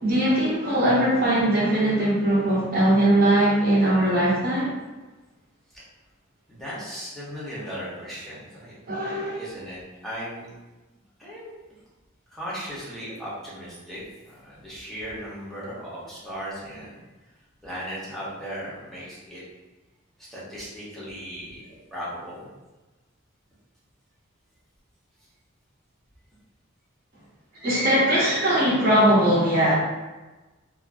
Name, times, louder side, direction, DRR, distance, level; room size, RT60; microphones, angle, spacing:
voice 1, 0.0-4.7 8.9-9.4 27.6-29.7, right 1 dB, 45° right, -6 dB, 0.8 m, -20 dB
voice 2, 6.5-8.7 9.3-10.5 11.2-11.5 12.3-17.0 17.6-19.4 20.2-22.5, equal, ahead, -9 dB, 0.8 m, -37 dB
2.5 x 2.4 x 2.4 m, 1.2 s
head